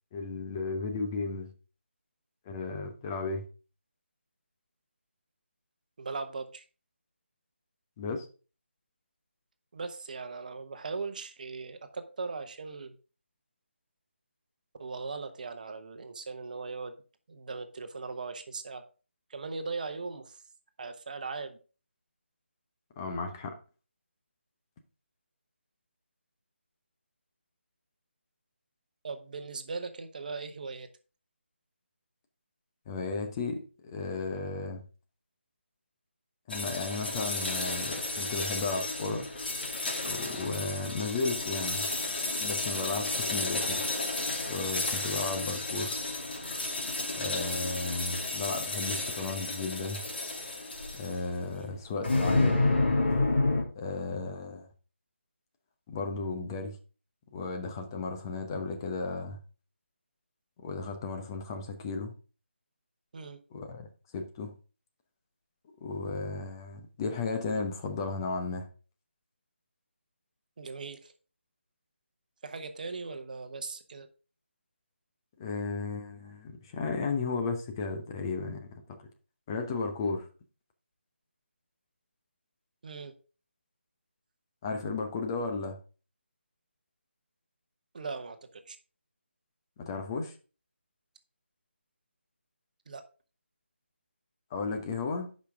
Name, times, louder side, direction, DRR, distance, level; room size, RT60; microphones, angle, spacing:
voice 1, 0.1-1.5 2.5-3.5 8.0-8.3 23.0-23.5 32.9-34.8 36.5-39.3 40.1-41.9 42.4-43.8 44.5-46.0 47.2-50.0 50.9-52.7 53.7-54.7 55.9-56.8 57.3-59.4 60.6-62.1 63.5-64.5 65.8-68.7 75.4-79.0 79.5-80.3 84.6-85.8 89.8-90.3 94.5-95.3, left 4 dB, 20° left, 0.9 m, -34 dB
voice 2, 6.0-6.6 9.7-13.0 14.8-16.9 17.3-18.8 19.3-20.4 20.8-21.6 29.0-30.9 51.5-51.7 63.1-63.4 70.6-71.1 72.4-74.1 82.8-83.1 87.9-88.8 92.9-93.0, right 4 dB, 45° right, 1.0 m, -39 dB
sound 1, 36.5-51.3 52.0-53.6, left 2 dB, 55° left, 2.7 m, -31 dB
10.5 x 5.3 x 3.6 m
figure-of-eight pair, 160°, 6 cm